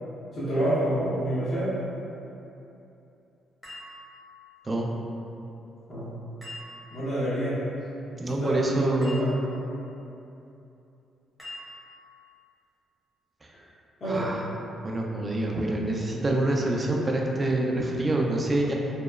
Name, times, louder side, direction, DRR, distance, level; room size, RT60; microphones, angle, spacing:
voice 1, 0.3-1.7 5.9-6.1 6.9-7.6 8.2-9.3 14.0-14.3, right 1 dB, 45° left, -11 dB, 0.9 m, -27 dB
sound 1, 3.6-4.6 6.4-7.2 9.0-9.7 11.4-12.2, left 1 dB, 10° left, 0.8 m, -44 dB
voice 2, 8.2-9.3 13.4-13.5 14.1-14.4 14.8-18.7, right 1 dB, 25° right, 0 dB, 0.3 m, -26 dB
2.9 x 2.0 x 2.3 m, 2.9 s
cardioid pair, 90°, 0 cm